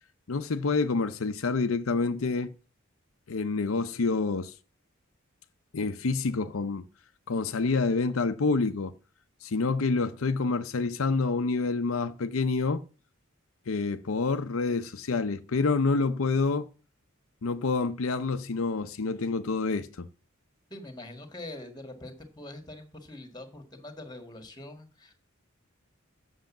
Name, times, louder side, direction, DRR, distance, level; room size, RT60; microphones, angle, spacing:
voice 1, 0.3-2.5 3.3-4.5 5.7-6.8 7.3-8.9 9.4-12.8 13.7-16.7 17.4-20.1, left 4 dB, 80° left, 0.6 m, -27 dB
voice 2, 20.7-25.1, left 1 dB, 20° left, 1.6 m, -44 dB
7.8 x 6.3 x 7.1 m
head